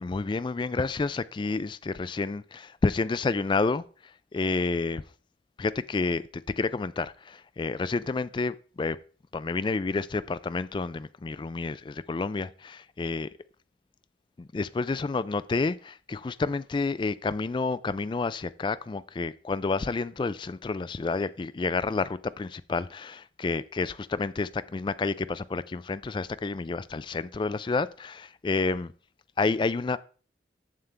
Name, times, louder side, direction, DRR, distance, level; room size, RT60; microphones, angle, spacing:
voice 1, 0.0-3.8 4.3-5.0 5.6-6.2 6.6-9.0 9.3-13.3 14.4-28.9 29.4-30.0, left 3 dB, 25° left, 0.3 m, -29 dB
7.5 x 7.2 x 3.3 m
head